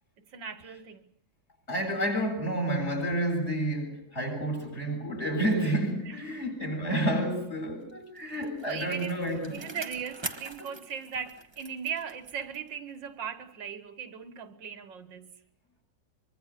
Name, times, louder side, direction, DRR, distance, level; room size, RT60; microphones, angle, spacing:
voice 1, 0.3-1.0 6.0-6.4 8.6-9.2 9.5-15.3, right 7 dB, 80° right, 2.0 m, -38 dB
voice 2, 1.7-9.6, right 1 dB, 35° left, 7.5 m, -30 dB
Bicycle, 7.9-12.8 13.2-13.3, right 3 dB, 20° right, 1.0 m, -44 dB
24.5 x 24.0 x 6.7 m
omnidirectional pair, 2.0 m